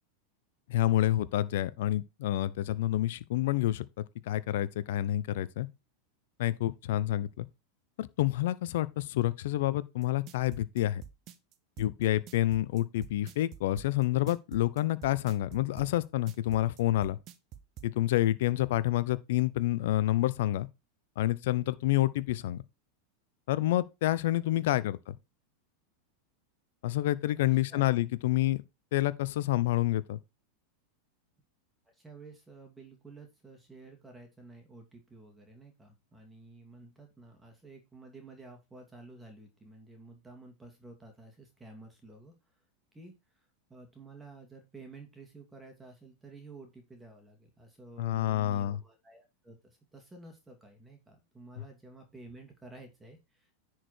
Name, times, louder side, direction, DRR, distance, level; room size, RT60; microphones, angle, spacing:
voice 1, 0.7-5.7 6.4-7.5 8.0-11.0 11.8-17.2 17.8-20.7 21.2-22.6 23.5-25.1 26.8-28.6 28.9-30.2 48.0-48.8, left 14 dB, 65° left, 0.7 m, -28 dB
sound 1, 10.0-17.9, right 10 dB, 45° right, 1.1 m, -47 dB
voice 2, 27.4-27.9 31.8-42.3 42.9-53.6, right 3 dB, 10° right, 2.7 m, -52 dB
10.0 x 4.7 x 4.4 m
hypercardioid pair, 95°, 0 cm